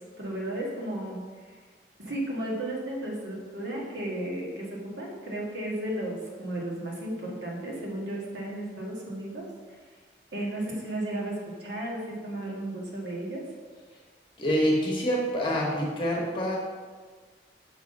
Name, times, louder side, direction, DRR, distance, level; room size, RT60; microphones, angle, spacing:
voice 1, 0.2-1.6 2.0-9.8 10.3-13.5, right 1 dB, 75° right, -3 dB, 1.6 m, -34 dB
voice 2, 14.4-16.6, equal, 25° left, -2 dB, 1.2 m, -26 dB
6.0 x 4.0 x 5.3 m, 1.5 s
head